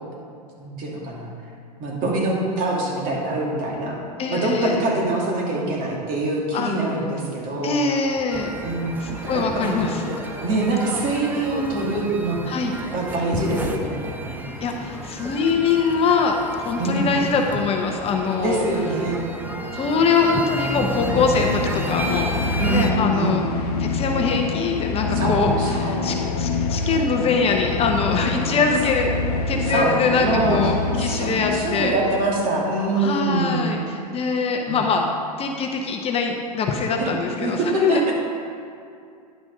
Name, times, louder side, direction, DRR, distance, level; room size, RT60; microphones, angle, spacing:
voice 1, 0.6-1.3 1.8-4.0 4.3-7.8 8.6-8.9 9.3-10.0 10.4-12.4 12.9-14.4 16.8-17.1 18.4-19.2 22.6-22.9 23.1-23.4 25.1-26.1 29.7-29.9 30.2-33.6 34.7-34.8 37.0-37.1 37.4-38.1, right 2 dB, 40° right, -2 dB, 2.5 m, -24 dB
voice 2, 4.2-4.8 6.5-6.7 7.6-8.5 9.0-10.2 12.4-12.7 14.6-18.7 19.7-22.4 22.7-23.4 23.8-29.1 29.5-31.9 33.0-35.1 35.4-38.1, left 4 dB, 30° left, 2 dB, 0.8 m, -23 dB
sound 1, 8.3-22.9, right 1 dB, 10° right, 0.8 m, -32 dB
sound 2, 20.5-32.2, left 4 dB, 65° left, 0.9 m, -26 dB
10.0 x 6.0 x 5.3 m, 2.4 s
hypercardioid pair, 100°, 21 cm